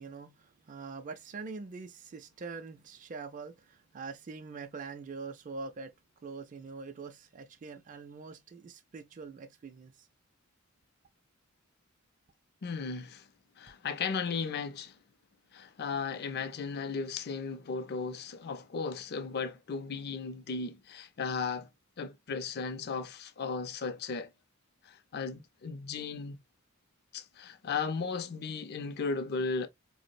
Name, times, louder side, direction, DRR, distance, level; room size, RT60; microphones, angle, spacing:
voice 1, 0.0-5.9 6.2-10.1, right 4 dB, 40° right, 0.4 m, -44 dB
voice 2, 12.6-13.3 13.6-15.0 15.5-21.7 22.0-24.3 24.8-26.4 27.1-29.7, left 5 dB, 50° left, 0.5 m, -36 dB
4.5 x 2.1 x 2.5 m
head